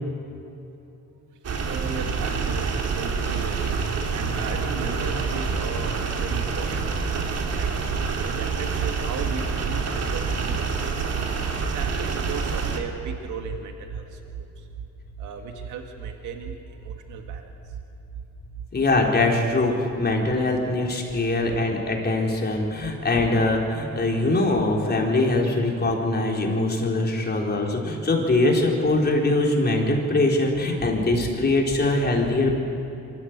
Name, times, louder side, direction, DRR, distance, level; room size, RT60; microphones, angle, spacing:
sound 1, 1.4-12.8, right 5 dB, 55° right, 2.6 m, -27 dB
voice 1, 1.7-10.9 11.7-14.7 15.1-17.8 18.3-18.5 30.5-30.6 30.9-31.2 32.2-32.3, right 5 dB, 80° right, 4 dB, 1.9 m, -34 dB
voice 2, 18.7-32.5, left 2 dB, 35° left, 0 dB, 4.0 m, -22 dB
24.5 x 14.5 x 8.1 m, 2.9 s
cardioid pair, 90°, 30 cm